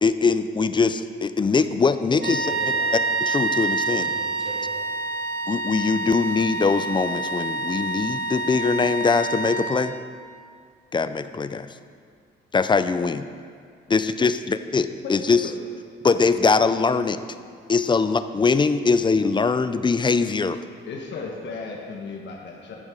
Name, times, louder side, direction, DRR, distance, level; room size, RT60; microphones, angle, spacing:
voice 1, 0.0-2.5 3.2-4.1 5.5-9.9 10.9-11.7 12.5-13.3 13.9-15.4 16.0-17.2 17.7-20.6, left 4 dB, 25° left, 12 dB, 0.5 m, -22 dB
voice 2, 2.1-3.0 3.8-4.9, right 2 dB, 45° right, -2 dB, 2.1 m, -40 dB
sound 1, 2.2-10.1, right 2 dB, 70° right, 1.0 m, -27 dB
voice 3, 20.9-22.8, left 4 dB, 65° left, -1 dB, 1.4 m, -35 dB
11.5 x 7.1 x 5.1 m, 2.1 s
cardioid pair, 90°, 20 cm